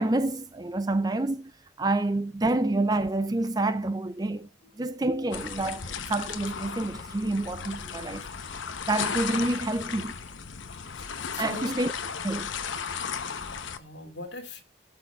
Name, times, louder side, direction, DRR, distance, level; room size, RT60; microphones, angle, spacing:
voice 1, 0.0-1.5 1.8-4.5 4.8-8.3 8.9-10.2 11.4-11.9 12.2-12.5, right 2 dB, 20° right, 0.5 m, -28 dB
voice 2, 4.6-5.3 10.9-11.8 13.0-14.6, left 2 dB, 65° left, 2.7 m, -44 dB
sound 1, 5.3-13.8, left 6 dB, 80° left, 0.9 m, -35 dB
18.0 x 6.2 x 2.4 m
head